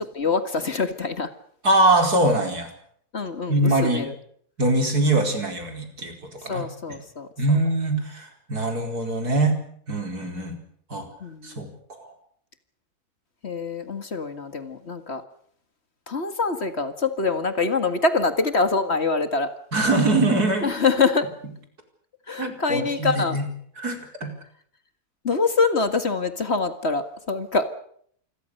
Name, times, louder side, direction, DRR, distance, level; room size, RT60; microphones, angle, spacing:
voice 1, 0.1-1.3 3.1-4.1 6.5-7.3 11.2-11.8 13.4-15.2 16.1-19.5 20.6-21.3 22.3-23.4 25.2-27.7, left 4 dB, 45° left, 9 dB, 2.0 m, -25 dB
voice 2, 1.6-2.7 3.5-4.1 4.6-6.1 6.4-6.6 7.4-9.6 9.9-10.6 10.9-11.1 11.4-11.7 12.0-12.1 19.7-20.7 22.4-23.4 23.8-24.3, right 2 dB, 75° right, 4 dB, 5.2 m, -22 dB
27.5 x 22.0 x 6.6 m, 0.65 s
omnidirectional pair, 1.6 m